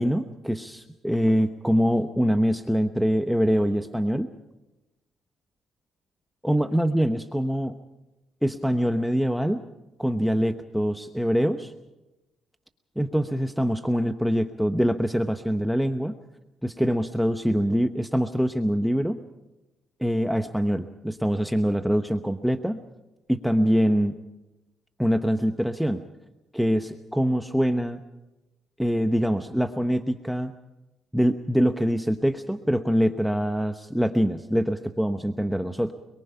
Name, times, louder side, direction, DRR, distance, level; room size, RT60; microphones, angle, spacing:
voice 1, 0.0-4.3 6.4-7.7 8.4-9.6 10.0-11.7 13.0-16.1 16.6-19.2 20.0-22.8 23.3-24.1 25.0-26.0 26.5-28.0 28.8-30.5 31.1-35.9, equal, ahead, 8 dB, 0.8 m, -24 dB
24.0 x 22.5 x 5.6 m, 1.0 s
cardioid pair, 90°, 0 cm